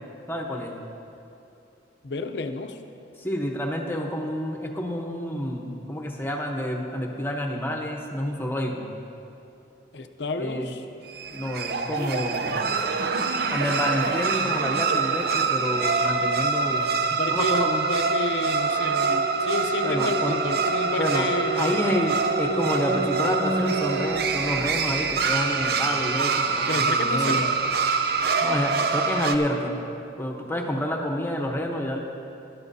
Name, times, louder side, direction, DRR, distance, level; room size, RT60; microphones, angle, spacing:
voice 1, 0.3-0.7 3.2-8.9 10.3-10.7 11.3-12.5 13.5-17.0 17.3-17.8 19.8-20.4 20.9-21.3 21.6-27.4 28.4-29.8 30.2-32.0, equal, 10° left, 1 dB, 0.9 m, -29 dB
voice 2, 2.0-2.8 9.9-10.8 17.2-22.0 26.7-27.7, left 2 dB, 65° left, 7 dB, 0.6 m, -31 dB
sound 1, 11.1-29.4, right 4 dB, 55° right, 0.6 m, -25 dB
18.5 x 11.5 x 2.7 m, 2.7 s
head